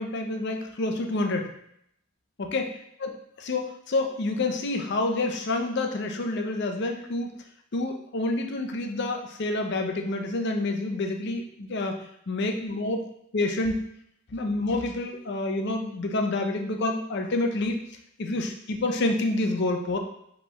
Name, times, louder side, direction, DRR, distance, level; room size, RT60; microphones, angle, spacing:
voice 1, 0.0-1.6 2.4-2.7 3.0-3.1 3.4-7.4 7.7-12.0 12.3-13.1 13.3-13.7 14.3-17.8 18.2-20.0, left 2 dB, 55° left, 4 dB, 0.6 m, -28 dB
5.4 x 3.2 x 3.0 m, 0.73 s
head